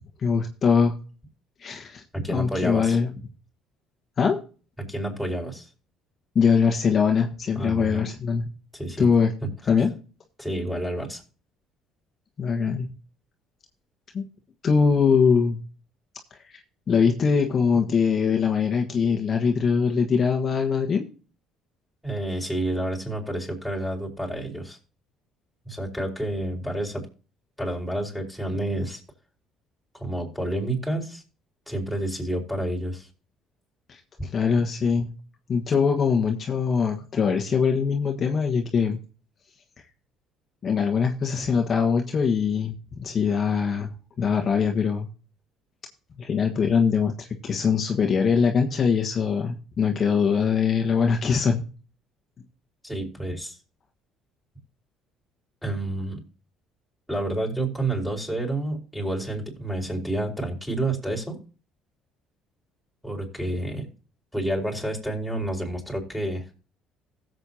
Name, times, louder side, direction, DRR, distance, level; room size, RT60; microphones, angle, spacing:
voice 1, 0.2-0.9 1.6-2.0 2.3-3.1 4.2-4.4 6.3-8.4 9.0-9.3 9.7-9.9 12.4-12.9 14.1-14.2 14.6-15.6 16.3-16.6 16.9-21.1 33.9-34.0 34.3-35.1 35.5-39.0 40.6-43.9 44.2-45.1 46.2-51.6, left 6 dB, 45° left, 2 dB, 1.5 m, -22 dB
voice 2, 2.1-3.0 4.8-5.7 7.5-8.0 8.7-9.1 9.4-9.7 10.4-11.2 22.0-24.8 25.6-27.1 27.6-29.0 29.9-31.2 31.7-33.1 34.2-34.3 52.8-53.6 55.6-56.2 57.1-61.4 63.0-63.9 64.3-66.4, right 1 dB, ahead, 0 dB, 5.1 m, -29 dB
16.0 x 7.8 x 2.9 m, 0.37 s
supercardioid pair, 75°, 0 cm